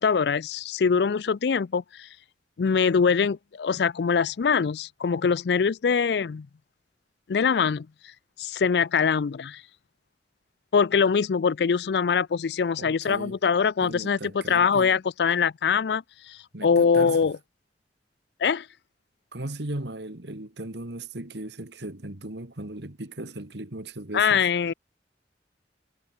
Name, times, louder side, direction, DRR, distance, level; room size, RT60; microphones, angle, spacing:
voice 1, 0.0-2.1 2.6-6.5 7.3-7.9 8.4-9.6 10.7-17.4 18.4-18.7 24.1-24.7, left 6 dB, 65° left, 0.4 m, -23 dB
voice 2, 12.7-13.4 13.8-14.9 16.5-17.2 19.3-24.5, right 1 dB, 75° right, 2.4 m, -37 dB
head